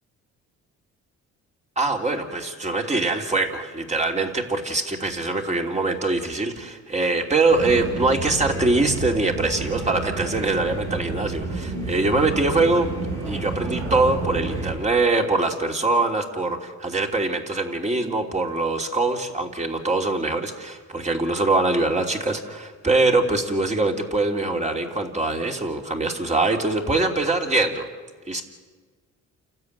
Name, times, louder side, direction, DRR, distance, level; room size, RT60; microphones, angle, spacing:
voice 1, 1.8-12.9 13.2-27.9 28.3-28.4, right 3 dB, 25° right, 2 dB, 3.1 m, -23 dB
sound 1, 7.5-14.7, right 3 dB, 90° right, 6.7 m, -30 dB
29.0 x 13.5 x 9.5 m, 1.4 s
cardioid pair, 90°, 30 cm